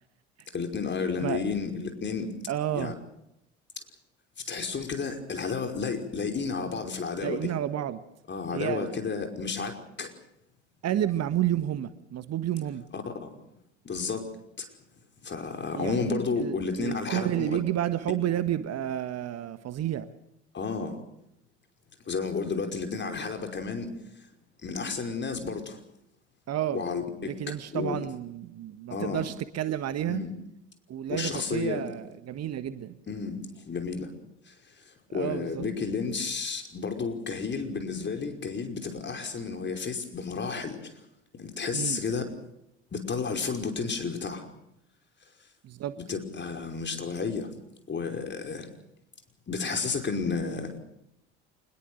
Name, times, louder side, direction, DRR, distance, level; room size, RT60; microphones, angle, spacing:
voice 1, 0.5-2.3 2.7-2.9 4.5-7.5 8.3-10.1 12.9-13.3 13.8-14.3 14.6-14.7 15.2-17.5 20.5-21.0 22.1-23.9 24.6-25.8 26.7-27.4 27.7-28.0 28.9-29.2 30.1-30.3 31.1-31.8 33.1-34.1 34.5-34.6 34.9-40.9 41.3-42.2 42.9-44.5 46.0-47.5 47.9-48.7 49.5-50.8, left 5 dB, 30° left, 5 dB, 5.4 m, -32 dB
voice 2, 2.5-2.9 7.2-8.0 8.5-9.0 10.8-12.8 15.7-20.1 26.5-26.8 27.2-30.2 30.9-33.0 35.1-35.7 41.7-42.0 45.6-46.0, right 11 dB, 45° right, 12 dB, 1.6 m, -31 dB
26.0 x 21.0 x 6.5 m, 0.82 s
figure-of-eight pair, 60°, 36 cm